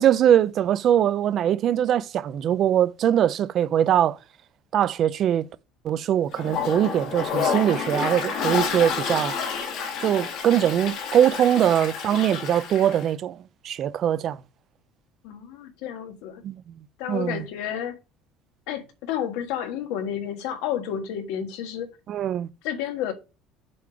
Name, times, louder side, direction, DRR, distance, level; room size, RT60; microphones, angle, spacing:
voice 1, 0.0-4.2 4.7-5.5 5.8-9.3 10.0-13.4 13.6-14.4 16.4-16.8 17.1-17.4 22.1-22.5, right 10 dB, 35° right, 0.4 m, -22 dB
Toilet flush, 6.3-13.1, left 6 dB, 50° left, 1.6 m, -29 dB
voice 2, 15.2-16.4 17.0-18.0 18.7-21.9 22.6-23.1, left 9 dB, 75° left, 1.5 m, -31 dB
6.8 x 5.0 x 4.9 m
cardioid pair, 175°, 0 cm